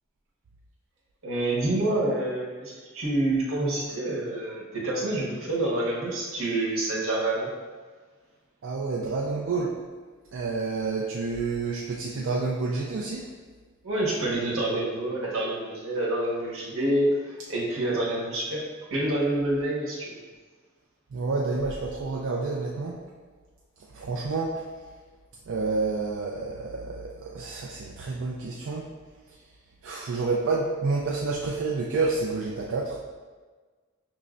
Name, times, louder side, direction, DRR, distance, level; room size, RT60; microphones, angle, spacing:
voice 1, 1.2-7.5 13.8-18.6 18.9-20.2, right 1 dB, 85° right, -5 dB, 1.0 m, -27 dB
voice 2, 8.6-9.8 10.3-13.3 21.1-23.0 23.9-24.6 25.5-28.9 29.8-33.0, right 3 dB, 65° right, -2 dB, 0.4 m, -29 dB
5.4 x 3.0 x 2.5 m, 1.4 s
head